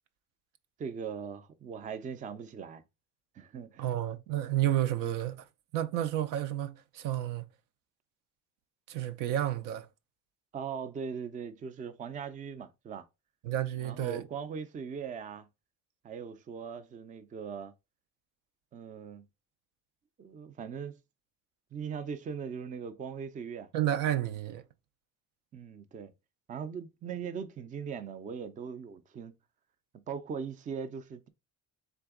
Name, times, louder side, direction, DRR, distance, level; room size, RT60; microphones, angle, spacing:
voice 1, 0.8-2.8 3.3-3.9 10.5-13.1 13.8-15.5 16.0-17.7 18.7-19.2 20.2-21.0 21.7-23.7 25.5-26.1 26.5-29.4 30.1-31.3, right 6 dB, 25° right, 0.4 m, -40 dB
voice 2, 3.8-5.4 5.7-7.5 8.9-9.9 13.4-14.2 23.7-24.6, right 12 dB, 75° right, 0.6 m, -31 dB
3.8 x 3.5 x 3.6 m
cardioid pair, 145°, 32 cm